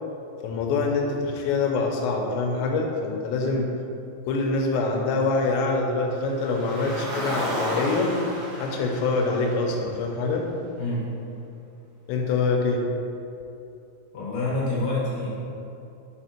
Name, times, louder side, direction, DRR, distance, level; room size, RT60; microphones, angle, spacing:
voice 1, 0.4-3.7 4.3-8.1 8.6-10.5 12.1-12.9, left 3 dB, 85° left, 1 dB, 2.8 m, -25 dB
Car, 6.3-10.7, equal, 80° right, 1.8 m, -33 dB
voice 2, 14.1-15.3, left 2 dB, 65° left, -7 dB, 2.4 m, -27 dB
6.5 x 3.5 x 4.3 m, 2.7 s
omnidirectional pair, 5.2 m